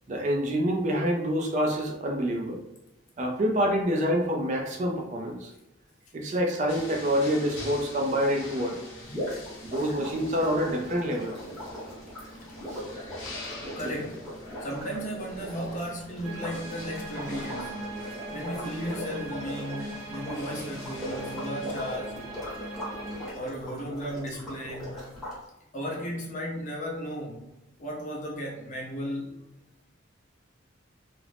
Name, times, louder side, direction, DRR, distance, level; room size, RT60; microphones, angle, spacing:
voice 1, 0.1-2.6 3.2-5.5 6.1-8.8 9.6-11.4 12.7-12.8 13.8-13.9, equal, 35° right, 1 dB, 0.3 m, -27 dB
sound 1, 6.7-22.0, left 1 dB, 70° left, 0.8 m, -45 dB
sound 2, 9.0-25.4, equal, ahead, 1.0 m, -39 dB
voice 2, 13.8-14.3 14.6-17.9 18.3-22.2 23.3-25.1 25.7-27.4 27.8-29.3, equal, 40° left, -2 dB, 0.6 m, -35 dB
sound 3, 16.2-23.3, right 1 dB, 85° right, 0.7 m, -40 dB
2.4 x 2.0 x 3.2 m, 0.90 s
head